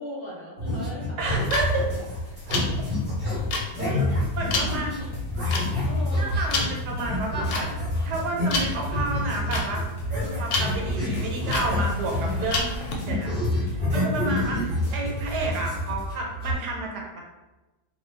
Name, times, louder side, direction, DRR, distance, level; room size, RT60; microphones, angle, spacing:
voice 1, 0.0-1.2 2.0-2.1 3.8-4.3 4.7-4.8 5.8-6.3, left 1 dB, 45° left, -6 dB, 0.8 m, -38 dB
sound 1, 0.6-12.6 12.9-16.5, left 1 dB, 50° right, 0.7 m, -28 dB
sound 2, 1.2-12.9, left 3 dB, 70° left, 1.0 m, -31 dB
voice 2, 1.2-1.9 2.5-2.6 3.9-4.1 4.3-5.0 6.2-7.8 8.0-9.8 10.1-12.7 13.0-13.3 13.6-17.2, right 2 dB, 85° right, -1 dB, 1.2 m, -30 dB
sound 3, 1.4-16.1, left 2 dB, 15° left, 0.8 m, -39 dB
2.4 x 2.3 x 3.2 m, 1.1 s
omnidirectional pair, 1.7 m